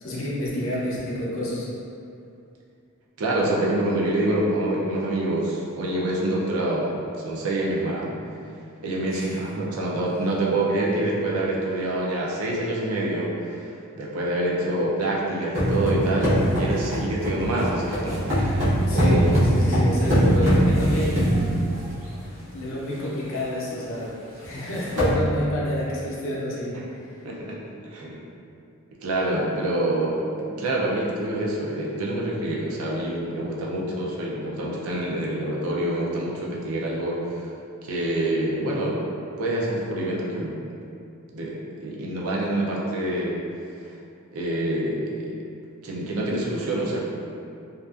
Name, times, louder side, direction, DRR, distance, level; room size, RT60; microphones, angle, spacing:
voice 1, 0.0-1.7 9.1-9.4 18.9-21.2 22.5-24.1 24.4-27.1, equal, 60° left, -6 dB, 0.5 m, -29 dB
voice 2, 3.2-6.9 7.2-8.1 8.8-19.3 19.5-19.7 27.2-27.6 27.8-28.2 29.0-37.5 37.8-39.0 39.4-40.6 41.3-43.4 44.3-45.4 45.8-47.0, right 1 dB, 75° right, -4 dB, 0.5 m, -26 dB
sound 1, 15.5-22.1 22.7-22.8 23.1-23.4 23.7-23.8 24.4-24.5 24.8-25.1, equal, 55° right, 0.8 m, -22 dB
2.5 x 2.4 x 2.3 m, 2.5 s
head